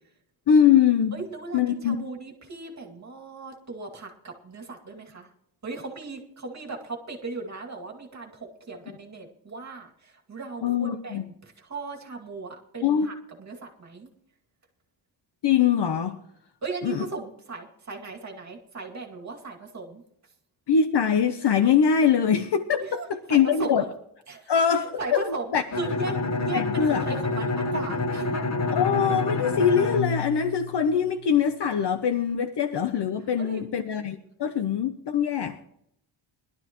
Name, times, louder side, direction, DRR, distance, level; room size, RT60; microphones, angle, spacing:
voice 1, 0.5-1.2 1.5-2.0 10.6-11.2 12.8-13.1 15.4-16.2 16.8-17.0 20.7-23.8 24.5-25.6 26.5-27.0 28.7-35.6, left 7 dB, 55° left, 0.8 m, -23 dB
voice 2, 1.1-5.3 5.6-14.1 16.6-20.0 22.8-23.9 24.3-28.3 33.4-33.7, right 3 dB, 35° right, 2.4 m, -37 dB
Bowed string instrument, 25.7-31.4, left 3 dB, 30° left, 1.1 m, -28 dB
21.0 x 12.0 x 3.0 m
wide cardioid pair, 175°, 49 cm